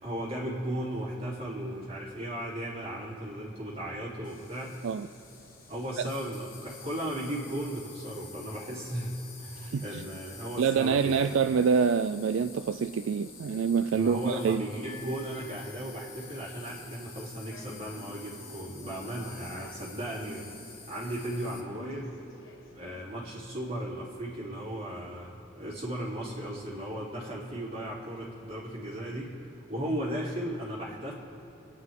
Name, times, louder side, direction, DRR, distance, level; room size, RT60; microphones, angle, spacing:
voice 1, 0.0-4.8 5.7-11.3 13.9-20.6 20.9-22.2 22.7-29.3 29.7-31.1, right 1 dB, 30° right, -7 dB, 3.3 m, -36 dB
sound 1, 3.9-23.0, left 2 dB, 80° left, 1.2 m, -55 dB
Insect, 4.2-21.6, left 5 dB, 45° left, 1.5 m, -49 dB
voice 2, 9.7-10.1 10.6-14.6, right 6 dB, 75° right, 10 dB, 0.4 m, -26 dB
28.5 x 9.6 x 3.7 m, 2.9 s
head